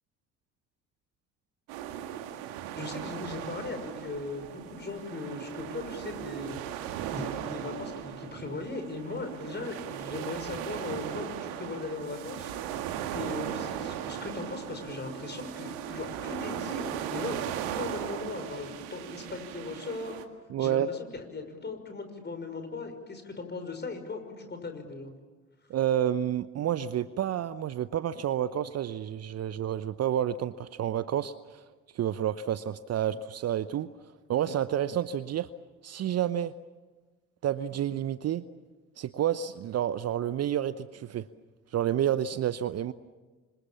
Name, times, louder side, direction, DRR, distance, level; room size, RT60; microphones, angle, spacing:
sound 1, 1.7-20.2, right 10 dB, 65° right, 2.0 m, -37 dB
voice 1, 2.7-12.5 13.1-20.2 20.6-25.1, left 3 dB, 25° left, 6 dB, 5.8 m, -38 dB
voice 2, 20.5-20.9 25.7-31.6 31.9-33.9 34.3-35.5 35.8-36.5 37.4-38.4 39.0-41.3 41.7-42.9, right 10 dB, 40° right, 15 dB, 0.8 m, -29 dB
30.0 x 26.0 x 7.3 m, 1.3 s
figure-of-eight pair, 55°, 40 cm